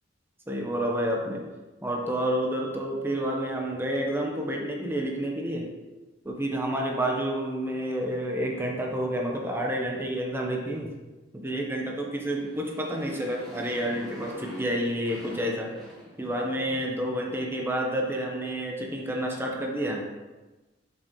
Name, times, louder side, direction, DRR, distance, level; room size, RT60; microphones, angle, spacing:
voice 1, 0.5-1.4 1.8-5.7 6.2-10.9 11.3-15.7 16.2-20.0, right 1 dB, 15° right, -1 dB, 1.0 m, -29 dB
Motorcycle, 12.2-16.8, left 1 dB, ahead, 2.4 m, -45 dB
7.1 x 6.7 x 3.2 m, 1.2 s
head